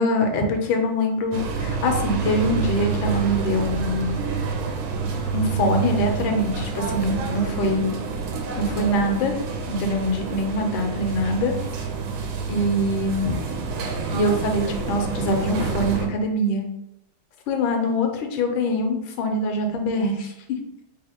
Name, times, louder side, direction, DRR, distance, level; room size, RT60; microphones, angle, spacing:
voice 1, 0.0-4.1 5.3-7.9 8.5-9.3 9.7-11.5 12.5-13.4 14.1-16.7 17.5-20.3, left 1 dB, 80° left, 4 dB, 1.4 m, -23 dB
sound 1, 1.3-16.1, right 5 dB, 85° right, 1.4 m, -28 dB
3.4 x 2.5 x 4.2 m, 0.83 s
omnidirectional pair, 2.2 m